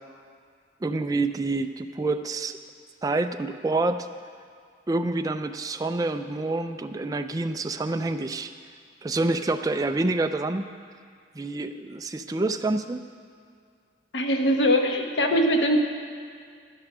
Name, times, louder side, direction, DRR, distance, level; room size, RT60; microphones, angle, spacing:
voice 1, 0.8-2.6 3.0-4.1 4.9-8.5 9.0-10.7 11.3-13.0, right 2 dB, 20° right, 7 dB, 0.4 m, -27 dB
voice 2, 14.1-15.8, equal, 80° left, 3 dB, 1.1 m, -22 dB
11.0 x 9.9 x 6.2 m, 2.2 s
head